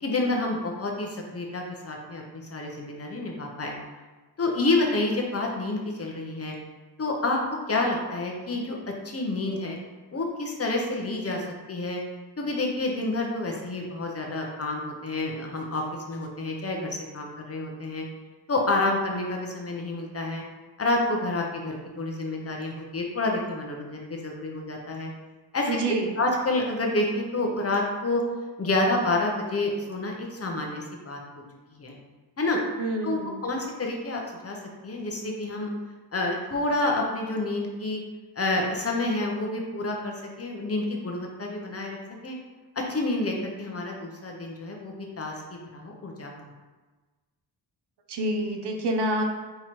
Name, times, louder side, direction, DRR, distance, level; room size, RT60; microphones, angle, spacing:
voice 1, 0.0-3.7 4.4-6.5 7.0-8.8 9.0-9.8 10.1-11.4 11.7-12.0 12.4-18.0 18.5-20.4 20.8-25.1 25.5-25.8 26.2-28.2 28.6-31.2 31.7-32.0 32.4-32.6 33.0-34.6 34.8-35.7 36.1-38.0 38.4-42.0 42.2-42.4 42.8-46.5, left 2 dB, 35° left, 0 dB, 0.6 m, -29 dB
voice 2, 25.7-26.1 32.8-33.4 48.1-49.2, right 1 dB, 75° right, 3 dB, 0.7 m, -27 dB
4.3 x 3.7 x 3.0 m, 1.3 s
wide cardioid pair, 165°, 41 cm